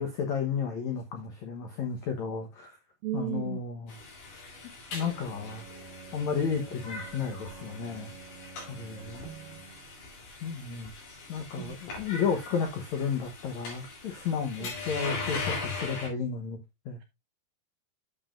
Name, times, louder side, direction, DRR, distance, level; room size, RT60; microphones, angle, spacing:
voice 1, 0.0-2.8 3.1-4.0 4.9-5.6 6.1-8.1 8.7-9.2 10.4-10.9 11.3-16.6 16.8-17.0, left 6 dB, 80° left, 1.6 m, -32 dB
voice 2, 3.0-3.6 9.2-9.7 11.6-11.8 14.6-14.7, right 15 dB, 80° right, 2.1 m, -36 dB
sound 1, 3.9-16.1, left 3 dB, 55° left, 4.9 m, -40 dB
Bowed string instrument, 4.9-10.0, right 5 dB, 50° right, 0.8 m, -49 dB
9.6 x 7.2 x 2.5 m
omnidirectional pair, 5.0 m